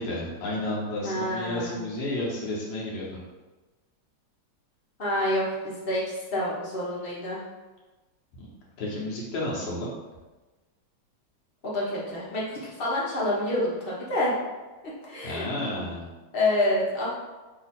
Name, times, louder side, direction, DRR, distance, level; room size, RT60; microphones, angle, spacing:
voice 1, 0.0-3.2 8.4-8.5 8.8-9.9 15.2-16.1, left 1 dB, 70° left, -5 dB, 1.7 m, -31 dB
voice 2, 1.0-1.8 5.0-7.4 11.6-14.3 15.1-15.5 16.3-17.1, left 1 dB, 35° left, -6 dB, 1.0 m, -28 dB
4.0 x 2.7 x 4.2 m, 1.2 s
omnidirectional pair, 2.2 m